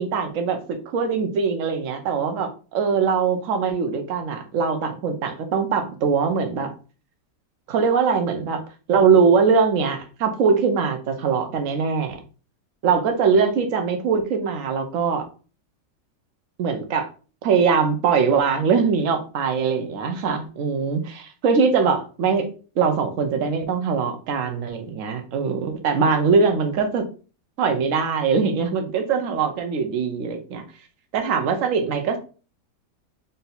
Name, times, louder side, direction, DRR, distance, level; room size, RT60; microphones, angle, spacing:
voice 1, 0.0-6.7 7.7-8.6 8.9-12.2 12.8-15.3 16.6-17.1 17.4-22.5 22.8-27.0 27.6-30.6 31.1-32.2, right 5 dB, 55° right, 6 dB, 1.0 m, -22 dB
3.9 x 2.8 x 4.0 m, 0.36 s
omnidirectional pair, 1.9 m